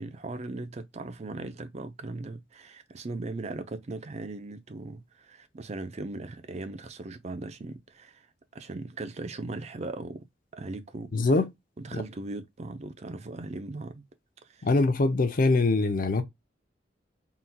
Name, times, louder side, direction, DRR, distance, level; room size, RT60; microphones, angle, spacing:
voice 1, 0.0-8.3 8.5-10.2 10.5-11.1 11.8-14.0 14.5-14.7, right 2 dB, 35° right, 0.5 m, -38 dB
voice 2, 11.1-11.5 11.9-12.0 14.6-16.2, left 3 dB, 50° left, 0.6 m, -23 dB
3.8 x 2.7 x 2.2 m
head